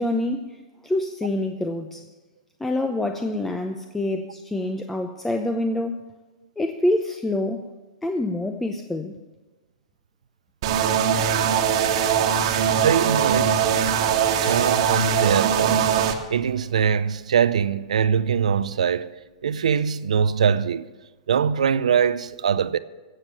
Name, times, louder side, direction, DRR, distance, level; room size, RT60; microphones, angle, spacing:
voice 1, 0.0-2.0 2.6-6.0 6.6-7.6 8.0-9.2, left 1 dB, 5° left, 0.7 m, -26 dB
sound 1, 10.6-16.1, right 8 dB, 60° right, 1.5 m, -21 dB
voice 2, 12.8-13.7 14.4-20.9 21.3-22.8, right 7 dB, 90° right, 0.6 m, -23 dB
14.0 x 8.0 x 7.6 m
hypercardioid pair, 130°, 4 cm